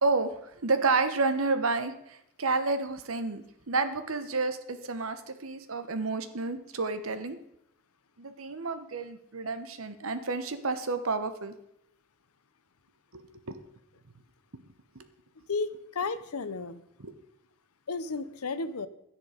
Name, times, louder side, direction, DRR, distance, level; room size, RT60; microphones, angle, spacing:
voice 1, 0.0-7.4 8.2-11.5 13.1-13.6 17.0-17.1, right 3 dB, 70° right, 10 dB, 1.1 m, -30 dB
voice 2, 15.5-16.8 17.9-18.9, left 4 dB, 85° left, 14 dB, 0.8 m, -33 dB
11.5 x 10.0 x 5.1 m, 0.79 s
head